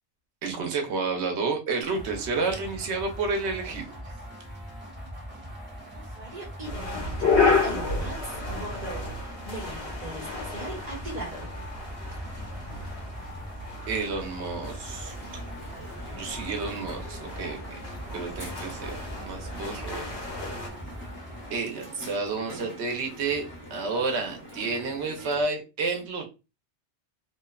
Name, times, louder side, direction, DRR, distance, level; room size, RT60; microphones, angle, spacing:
voice 1, 0.4-3.9 13.9-15.1 16.1-17.8 18.1-19.0 19.3-20.0 21.5-23.4 23.7-26.3, right 4 dB, 80° right, 3 dB, 1.0 m, -30 dB
sound 1, 1.8-21.6, equal, 10° right, 0.9 m, -41 dB
voice 2, 5.9-11.6, right 1 dB, 40° right, -3 dB, 1.1 m, -39 dB
sound 2, 6.6-20.7, left 4 dB, 80° left, 1.1 m, -32 dB
Crowd, 14.8-25.4, equal, 10° left, 0.9 m, -44 dB
2.8 x 2.0 x 2.2 m, 0.29 s
omnidirectional pair, 1.1 m